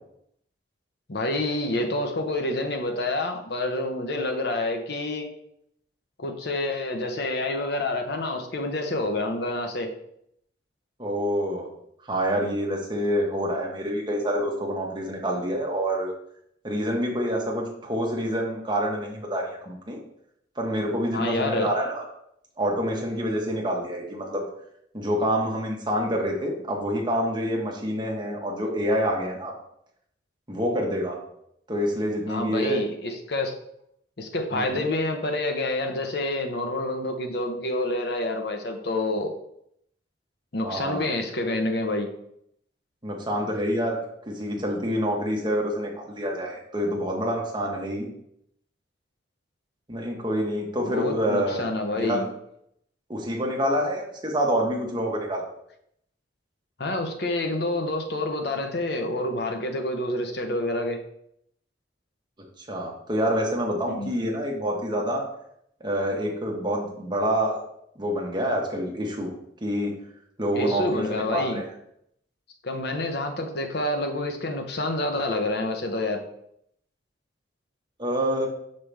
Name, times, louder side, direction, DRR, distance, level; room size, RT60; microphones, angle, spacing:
voice 1, 1.1-5.3 6.2-9.9 21.1-21.7 32.3-33.5 34.2-39.3 40.5-42.1 50.9-52.3 56.8-61.0 64.0-64.1 70.5-71.6 72.6-76.2, left 2 dB, 60° left, 4 dB, 0.9 m, -28 dB
voice 2, 11.0-11.7 12.0-16.1 16.6-20.0 20.6-22.0 22.6-24.4 24.9-29.5 30.5-31.2 31.7-32.8 34.5-34.9 40.6-41.1 43.0-44.0 44.3-48.1 49.9-51.7 51.9-52.3 53.1-55.4 62.6-65.2 65.8-67.6 67.9-69.3 69.6-69.9 70.4-71.7 78.0-78.5, equal, 25° right, -1 dB, 1.3 m, -27 dB
5.8 x 5.4 x 3.4 m, 0.74 s
head